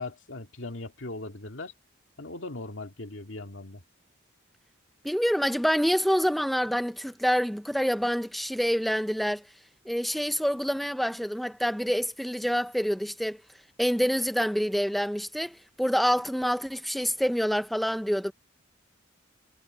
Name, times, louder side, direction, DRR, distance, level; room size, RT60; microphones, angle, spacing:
voice 1, 0.0-1.7 2.2-3.8, left 2 dB, 70° left, 2.2 m, -39 dB
voice 2, 5.0-9.4 9.9-13.4 13.8-18.3, equal, ahead, 0.6 m, -27 dB
head